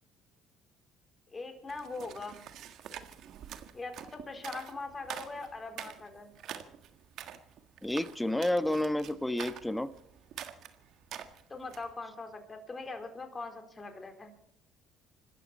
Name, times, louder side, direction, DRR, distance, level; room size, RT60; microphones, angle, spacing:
voice 1, 1.3-2.5 3.7-6.3 11.5-14.3, left 3 dB, 30° left, 6 dB, 4.0 m, -41 dB
sound 1, 1.7-11.9, right 10 dB, 65° right, 1.6 m, -46 dB
voice 2, 7.8-9.9, left 1 dB, 10° left, 13 dB, 1.3 m, -30 dB
26.5 x 13.0 x 4.2 m, 0.73 s
supercardioid pair, 70°, 0 cm